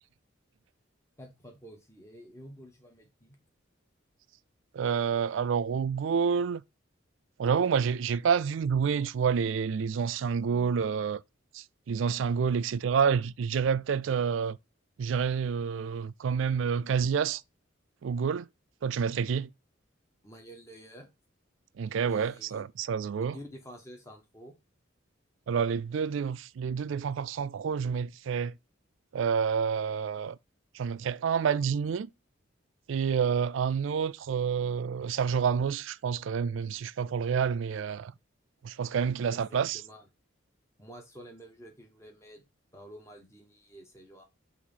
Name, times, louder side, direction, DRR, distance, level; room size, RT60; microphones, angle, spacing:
voice 1, 1.2-3.4 20.2-21.1 22.0-22.7 23.2-24.5 39.2-40.1 40.8-42.4 42.7-44.2, equal, 15° left, 1.4 m, -49 dB
voice 2, 4.7-6.6 7.4-11.2 11.5-14.6 15.0-17.4 18.0-18.5 18.8-19.5 21.8-23.4 25.5-28.5 29.1-30.4 30.7-32.1 32.9-38.1 38.6-39.8, right 6 dB, 75° right, 0.3 m, -28 dB
6.4 x 3.0 x 5.4 m
head